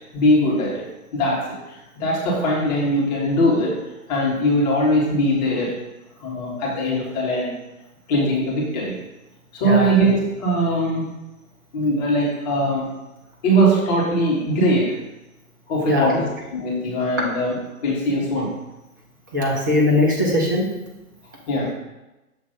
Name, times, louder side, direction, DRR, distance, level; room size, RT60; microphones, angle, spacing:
voice 1, 0.1-0.8 1.1-1.4 1.7-3.7 4.1-5.7 6.2-7.5 8.1-8.9 9.5-11.1 11.7-12.9 13.4-15.0 15.7-16.2 16.5-18.5 21.5-21.7, equal, 30° left, -4 dB, 1.6 m, -21 dB
voice 2, 19.3-20.6, left 2 dB, 15° right, -3 dB, 0.5 m, -19 dB
6.8 x 3.1 x 5.2 m, 1.0 s
figure-of-eight pair, 130°, 44 cm